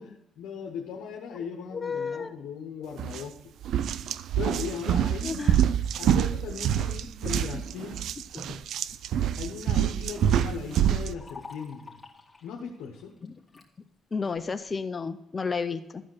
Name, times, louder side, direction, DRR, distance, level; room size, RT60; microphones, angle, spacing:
voice 1, 0.0-3.4 4.3-5.4 6.0-8.1 9.4-12.0 12.4-13.1, left 7 dB, 85° left, 1 dB, 1.0 m, -38 dB
voice 2, 1.7-2.3 5.2-5.6 7.3-7.6 8.3-8.6 13.2-13.3 14.1-16.0, left 5 dB, 30° left, 9 dB, 0.6 m, -32 dB
sound 1, 3.0-3.2 3.6-11.1, right 10 dB, 70° right, 0.4 m, -26 dB
Liquid, 10.0-13.7 14.2-14.7, left 4 dB, 10° left, 2.0 m, -50 dB
12.0 x 5.1 x 6.0 m, 0.88 s
cardioid pair, 80°, 0 cm